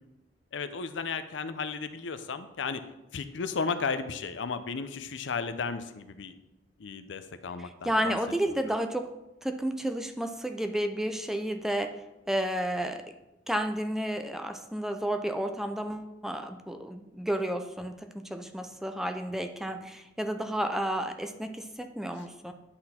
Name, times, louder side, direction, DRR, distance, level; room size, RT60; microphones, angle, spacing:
voice 1, 0.5-2.8 3.1-6.3 6.8-8.2 8.5-8.6, left 5 dB, 75° left, 11 dB, 0.5 m, -34 dB
voice 2, 7.6-9.1 9.4-12.0 12.3-13.2 13.5-22.5, right 1 dB, ahead, 7 dB, 0.4 m, -31 dB
9.8 x 4.3 x 4.2 m, 0.96 s
head